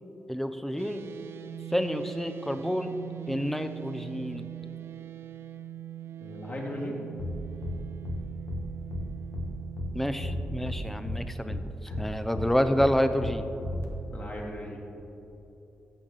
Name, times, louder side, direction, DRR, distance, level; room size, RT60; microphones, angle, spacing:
voice 1, 0.3-1.0 1.7-3.0 3.3-4.5 9.9-11.6 12.0-13.5, equal, 5° left, 9 dB, 0.6 m, -28 dB
sound 1, 0.8-11.1, right 12 dB, 70° right, 0.4 m, -42 dB
voice 2, 6.2-7.0 11.9-12.1 14.1-14.8, equal, 40° left, -2 dB, 2.0 m, -37 dB
sound 2, 7.2-7.3 7.6-7.8 8.0-8.2 8.5-8.6 8.9-9.0 9.3-9.5 9.8-9.9 10.2-10.8 11.0-11.2 11.5-11.6 11.9-12.0 12.3-12.5 12.8-12.9 13.2-13.3 13.6-13.8, left 1 dB, 80° left, 1.2 m, -33 dB
14.5 x 6.1 x 4.0 m, 3.0 s
cardioid pair, 90°, 4 cm